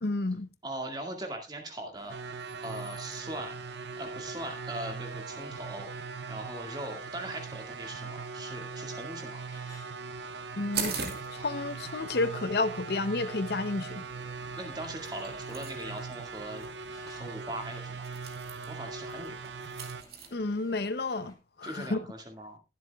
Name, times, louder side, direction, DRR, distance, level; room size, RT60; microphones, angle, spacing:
voice 1, 0.0-0.5 10.6-14.0 20.3-22.0, left 3 dB, 65° left, 0.7 m, -31 dB
voice 2, 0.6-2.2 2.6-3.6 4.0-5.9 6.3-9.4 14.5-16.7 17.1-18.0 18.7-19.4 21.6-22.6, right 1 dB, 25° right, 2.0 m, -40 dB
sound 1, 1.9-21.3, left 1 dB, 20° left, 2.9 m, -58 dB
sound 2, 2.1-20.0, right 4 dB, 80° right, 0.7 m, -40 dB
sound 3, 10.7-20.3, right 6 dB, 65° right, 2.0 m, -43 dB
21.5 x 7.7 x 2.3 m
head